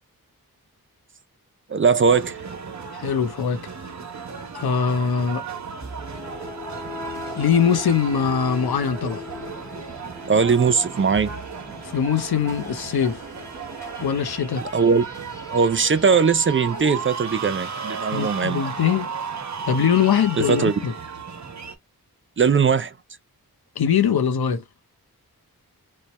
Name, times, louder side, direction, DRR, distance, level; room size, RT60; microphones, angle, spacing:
voice 1, 1.7-2.4 10.3-11.3 14.7-15.1 15.5-18.6 20.3-20.8 22.4-22.9, right 5 dB, 35° right, 0.4 m, -19 dB
sound 1, 2.1-21.7, right 5 dB, 50° right, 0.8 m, -35 dB
voice 2, 2.9-3.6 4.5-5.4 7.4-9.2 11.8-13.2 14.0-14.7 18.1-19.1 19.7-20.9 23.8-24.6, left 7 dB, 85° left, 0.7 m, -22 dB
sound 2, 5.8-18.1, left 1 dB, 5° left, 1.4 m, -40 dB
3.1 x 2.2 x 4.0 m
wide cardioid pair, 70°, 37 cm